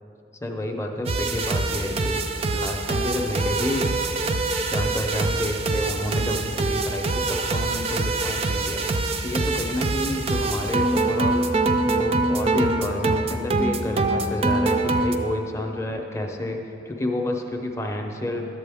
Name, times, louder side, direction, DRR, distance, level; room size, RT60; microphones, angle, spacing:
voice 1, 0.4-4.3 4.7-11.5 11.8-18.5, left 1 dB, 15° left, 2 dB, 0.6 m, -30 dB
sound 1, 1.1-15.2, right 3 dB, 30° right, 0.3 m, -24 dB
11.5 x 7.6 x 3.5 m, 2.8 s
head